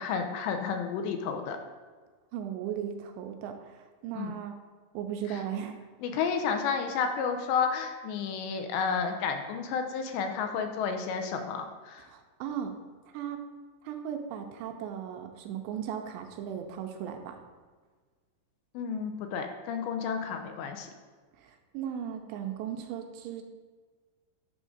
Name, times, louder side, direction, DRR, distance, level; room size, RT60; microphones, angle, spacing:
voice 1, 0.0-1.6 4.2-4.3 5.3-5.4 6.0-12.0 18.7-20.9, left 6 dB, 85° left, 5 dB, 2.8 m, -31 dB
voice 2, 2.3-4.6 4.9-5.8 12.1-12.8 13.1-13.4 13.8-17.4 21.4-23.4, right 9 dB, 85° right, 4 dB, 2.8 m, -37 dB
11.0 x 3.7 x 6.5 m, 1.4 s
omnidirectional pair, 5.3 m